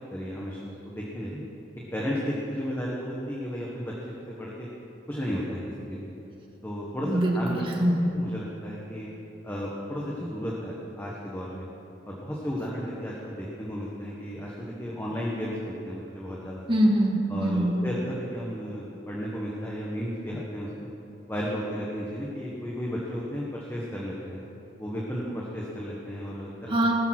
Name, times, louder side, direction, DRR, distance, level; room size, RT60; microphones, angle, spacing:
voice 1, 0.1-1.4 1.9-3.9 4.2-4.7 5.1-5.6 5.9-6.1 6.6-9.1 9.4-11.7 12.0-16.6 17.3-20.9 21.3-24.4 24.8-26.7, equal, 15° left, -5 dB, 1.4 m, -33 dB
voice 2, 7.0-8.1 16.7-17.8 26.7-26.9, right 1 dB, 30° right, -1 dB, 1.9 m, -23 dB
19.5 x 7.1 x 6.0 m, 2.9 s
head